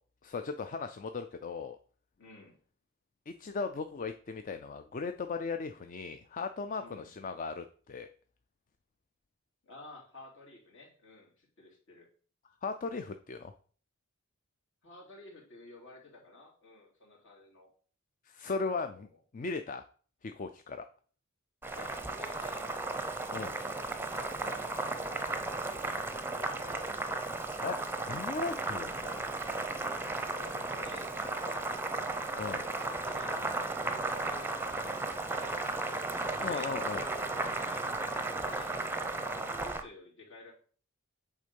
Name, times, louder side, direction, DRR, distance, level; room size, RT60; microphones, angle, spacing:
voice 1, 0.2-1.8 3.3-8.1 12.6-13.5 18.3-19.1 19.3-19.9 20.2-20.9 23.3-23.5 27.6-29.3 32.4-32.6 36.4-37.0, left 4 dB, 40° left, 8 dB, 0.4 m, -37 dB
voice 2, 2.2-2.6 6.8-7.1 9.6-12.1 14.8-17.7 18.7-19.2 21.7-22.7 23.3-26.7 30.3-31.8 32.2-37.9 38.3-40.5, left 2 dB, 65° left, -3 dB, 2.9 m, -53 dB
Boiling, 21.6-39.8, right 2 dB, 10° right, 0.6 m, -35 dB
8.2 x 3.7 x 5.2 m, 0.44 s
head